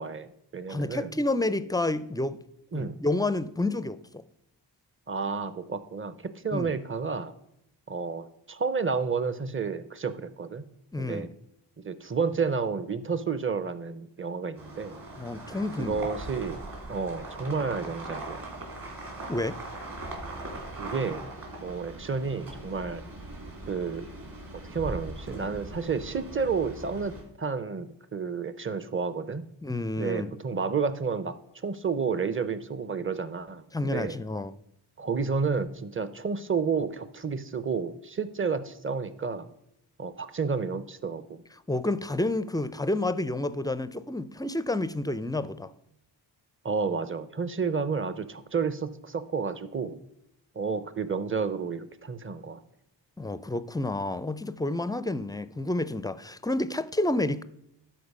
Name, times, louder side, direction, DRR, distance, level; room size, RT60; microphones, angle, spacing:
voice 1, 0.0-1.2 2.7-3.0 5.1-7.3 7.9-10.6 11.0-11.3 11.8-15.0 15.8-16.6 16.9-18.5 20.8-21.2 21.6-23.0 23.7-24.1 24.7-29.5 30.0-34.2 35.0-39.5 40.0-41.4 46.6-50.0 50.6-52.6, right 5 dB, 30° right, 0.7 m, -31 dB
voice 2, 0.7-2.4 2.7-4.2 6.5-6.7 10.9-11.3 15.2-16.0 19.3-19.6 29.6-30.3 33.7-34.5 41.7-45.7 53.2-57.4, left 2 dB, 10° left, 0.4 m, -29 dB
sound 1, 14.6-27.2, right 2 dB, 45° right, 3.1 m, -40 dB
12.0 x 4.2 x 5.4 m
cardioid pair, 60°, 45 cm